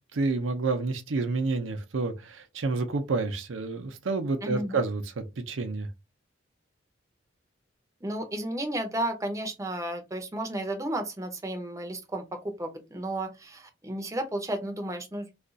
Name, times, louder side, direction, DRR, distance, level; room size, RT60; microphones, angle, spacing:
voice 1, 0.1-5.9, right 3 dB, 85° right, 0.6 m, -29 dB
voice 2, 4.4-4.8 8.0-15.3, right 1 dB, 15° right, 0.6 m, -33 dB
2.4 x 2.3 x 3.8 m
head